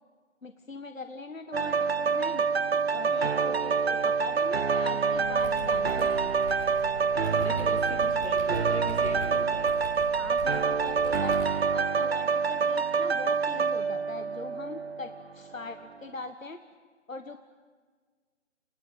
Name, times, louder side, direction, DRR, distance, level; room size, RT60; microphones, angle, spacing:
voice 1, 0.4-2.4 2.9-6.3 10.2-11.4 11.7-16.6 17.1-17.4, left 3 dB, 90° left, 8 dB, 1.5 m, -41 dB
sound 1, 1.5-15.2 15.7-15.8, right 5 dB, 55° right, 0.8 m, -27 dB
sound 2, 5.1-11.4, left 2 dB, 20° left, 7.6 m, -42 dB
voice 2, 7.1-9.8, left 2 dB, 55° left, 4 dB, 3.5 m, -41 dB
28.5 x 17.0 x 9.2 m, 1.5 s
figure-of-eight pair, 160°, 38 cm